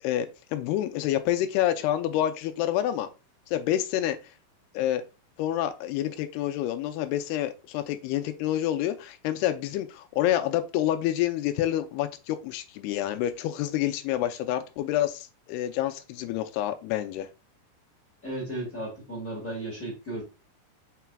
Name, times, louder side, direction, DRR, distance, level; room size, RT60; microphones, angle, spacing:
voice 1, 0.0-3.1 3.5-4.2 4.7-5.0 5.4-17.3, left 12 dB, 80° left, 2.4 m, -28 dB
voice 2, 18.2-20.2, right 1 dB, 35° left, 1.4 m, -34 dB
5.8 x 4.1 x 2.2 m
omnidirectional pair, 4.9 m